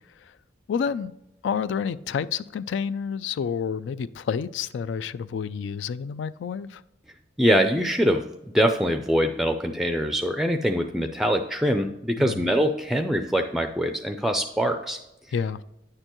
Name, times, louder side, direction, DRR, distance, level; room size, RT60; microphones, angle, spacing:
voice 1, 0.7-1.1 1.4-6.8 12.2-12.5 15.3-15.6, left 6 dB, 75° left, 0.3 m, -29 dB
voice 2, 7.4-15.0, equal, ahead, 0.4 m, -23 dB
9.6 x 6.6 x 3.0 m
head